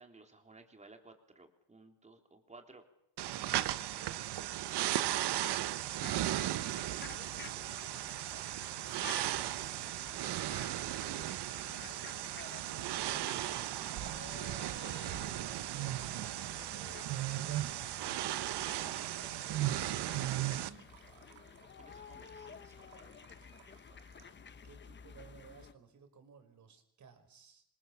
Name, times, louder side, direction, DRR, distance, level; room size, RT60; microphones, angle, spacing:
voice 1, 0.0-2.8 10.4-11.4 18.6-18.7 21.8-22.9, right 3 dB, 15° right, 5 dB, 3.4 m, -59 dB
sound 1, 3.2-20.7, right 13 dB, 55° right, 1.1 m, -36 dB
sound 2, 6.0-25.7, left 6 dB, 25° left, 1.0 m, -53 dB
voice 2, 7.9-8.3 12.9-15.9 16.7-18.3 18.8-20.9 21.3-21.4 24.6-27.6, right 6 dB, 35° right, 7 dB, 5.1 m, -58 dB
sound 3, 12.4-24.5, right 12 dB, 90° right, 2.8 m, -58 dB
27.5 x 25.5 x 7.3 m, 0.74 s
cardioid pair, 155°, 48 cm